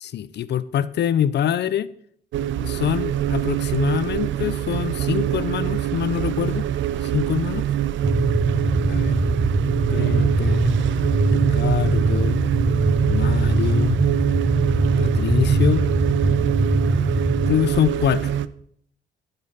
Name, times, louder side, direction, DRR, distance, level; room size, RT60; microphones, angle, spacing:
voice 1, 0.0-1.9 2.6-6.7 7.0-7.7 8.8-9.1 9.9-10.7 11.3-12.4 13.0-14.0 15.0-15.9 17.5-18.3, left 10 dB, 60° left, 16 dB, 0.6 m, -25 dB
sound 1, 2.3-18.5, right 11 dB, 70° right, 0.5 m, -24 dB
sound 2, 8.0-17.5, right 2 dB, 20° right, 1.0 m, -21 dB
13.5 x 5.5 x 5.6 m, 0.64 s
cardioid pair, 90°, 20 cm